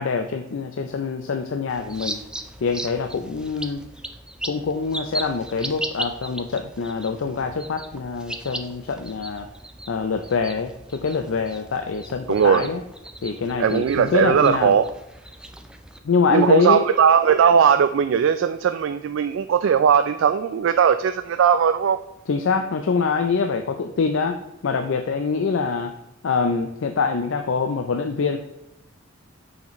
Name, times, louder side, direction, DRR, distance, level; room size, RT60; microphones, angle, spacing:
voice 1, 0.0-2.2 2.6-3.8 4.4-9.5 9.9-12.8 13.2-14.8 16.0-16.9 22.3-26.0 26.2-28.4, left 5 dB, 75° left, 7 dB, 0.5 m, -24 dB
sound 1, 1.7-16.0, right 1 dB, 5° right, 0.4 m, -37 dB
voice 2, 12.3-12.7 13.6-14.9 16.3-22.0, right 7 dB, 75° right, 10 dB, 0.3 m, -18 dB
6.6 x 5.7 x 3.0 m, 0.91 s
head